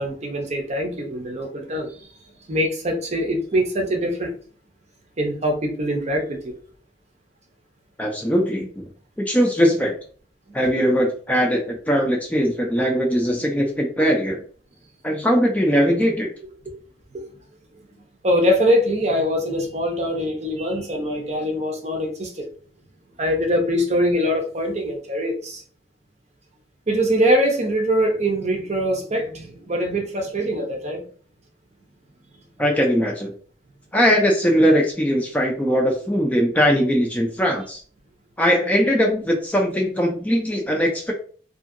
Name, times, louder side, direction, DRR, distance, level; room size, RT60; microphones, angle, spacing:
voice 1, 0.0-2.1 2.5-4.3 5.2-6.5 16.7-16.8 17.1-17.2 18.2-22.4 23.2-25.6 26.9-31.0, equal, 40° right, 0.6 m, -23 dB
voice 2, 8.0-8.9 9.2-9.9 10.5-14.4 15.0-16.3 32.6-33.3 33.9-37.8 38.4-41.1, equal, 10° left, 0.5 m, -20 dB
2.7 x 2.7 x 2.5 m
head